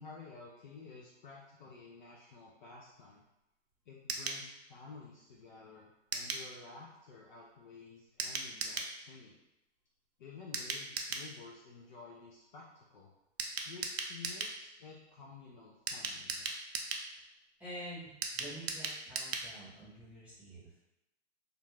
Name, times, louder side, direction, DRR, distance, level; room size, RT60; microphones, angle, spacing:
voice 1, 0.0-3.2 3.9-9.4 10.2-13.1 13.6-16.5, left 4 dB, 40° left, -3 dB, 0.4 m, -52 dB
sound 1, 4.1-4.4 6.1-6.5 8.2-8.9 10.5-11.3 13.4-14.6 15.9-17.1 18.2-19.5 19.8-19.9 20.1-20.2, right 4 dB, 60° right, 0.5 m, -37 dB
voice 2, 17.6-20.7, equal, 5° right, -10 dB, 0.9 m, -48 dB
2.5 x 2.2 x 3.0 m, 0.94 s
hypercardioid pair, 135°, 36 cm